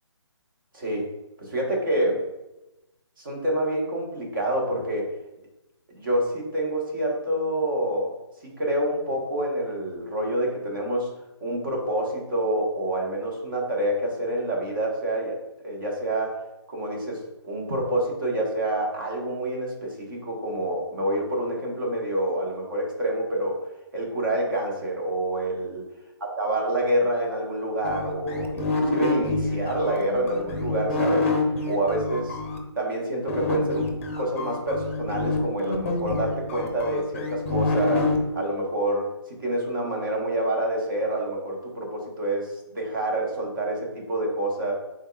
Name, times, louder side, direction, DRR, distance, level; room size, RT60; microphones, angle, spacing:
voice 1, 0.7-1.1 1.4-2.2 3.2-5.1 5.9-8.1 8.6-11.1 11.4-15.4 15.6-16.4 16.7-23.6 23.9-25.8 26.2-31.3 31.7-32.4 32.7-38.0 38.3-44.7, right 1 dB, 45° right, -1 dB, 1.4 m, -27 dB
sound 1, 27.8-32.6 33.3-38.2, left 3 dB, 30° left, 0.6 m, -27 dB
5.2 x 3.7 x 2.4 m, 0.96 s
hypercardioid pair, 165°, 15 cm